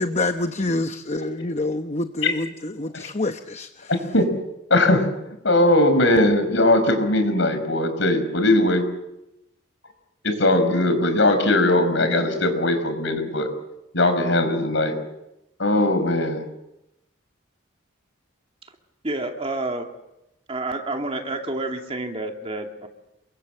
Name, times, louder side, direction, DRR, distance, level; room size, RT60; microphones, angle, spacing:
voice 1, 0.0-3.9, left 2 dB, 35° left, 8 dB, 0.9 m, -27 dB
voice 2, 3.9-4.3 4.7-5.1 5.4-8.9 10.2-13.5 13.9-15.0 15.6-16.4, left 1 dB, 65° left, 8 dB, 5.1 m, -20 dB
voice 3, 19.0-19.9 20.5-22.9, right 2 dB, 30° right, 3 dB, 2.6 m, -29 dB
28.5 x 23.5 x 7.8 m, 0.89 s
head